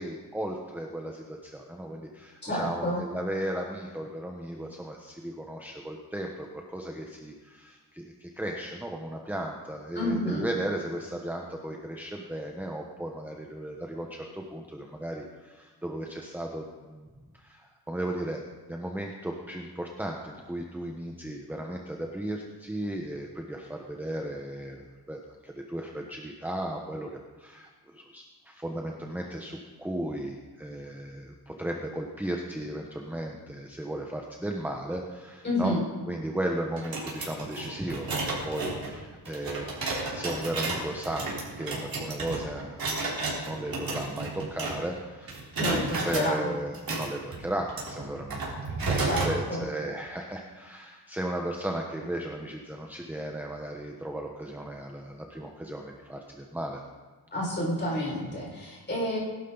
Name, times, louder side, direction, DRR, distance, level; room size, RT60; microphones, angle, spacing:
voice 1, 0.0-35.8 36.1-39.7 40.1-42.9 43.4-45.4 45.7-56.8 58.2-58.4, right 1 dB, 5° right, 1 dB, 1.1 m, -35 dB
voice 2, 2.4-3.0 9.9-10.5 35.4-35.8 45.6-46.5 49.0-49.7 57.3-59.2, left 1 dB, 25° left, -5 dB, 5.9 m, -29 dB
sound 1, 36.8-45.0 45.3-46.3 46.7-49.4, right 3 dB, 60° right, 4.2 m, -33 dB
20.5 x 11.5 x 4.0 m, 1.4 s
wide cardioid pair, 120°, 39 cm